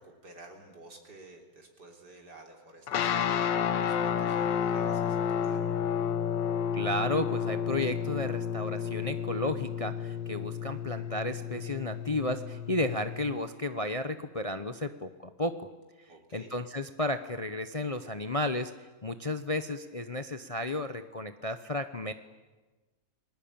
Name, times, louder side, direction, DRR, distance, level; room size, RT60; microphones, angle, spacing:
voice 1, 0.0-5.8 16.1-16.5, right 2 dB, 70° right, 1 dB, 4.1 m, -52 dB
sound 1, 2.9-13.4, left 8 dB, 85° left, 1.7 m, -31 dB
voice 2, 6.7-15.7 16.3-18.7 19.0-22.1, left 2 dB, 35° left, 9 dB, 0.6 m, -33 dB
29.5 x 20.0 x 8.7 m, 1.3 s
omnidirectional pair, 1.9 m